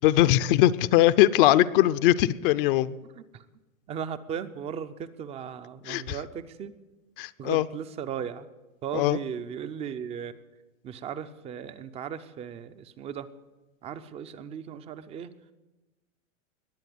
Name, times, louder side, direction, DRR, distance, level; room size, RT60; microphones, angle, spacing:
voice 1, 0.0-3.0 5.9-6.2 7.2-7.6 8.9-9.2, left 14 dB, 45° left, 14 dB, 0.6 m, -21 dB
voice 2, 3.0-3.5 3.9-6.7 7.4-8.5 8.8-10.3 10.8-13.3 13.8-15.3, right 8 dB, 15° right, 13 dB, 0.4 m, -37 dB
20.5 x 7.8 x 7.8 m, 1.1 s
hypercardioid pair, 135°, 40 cm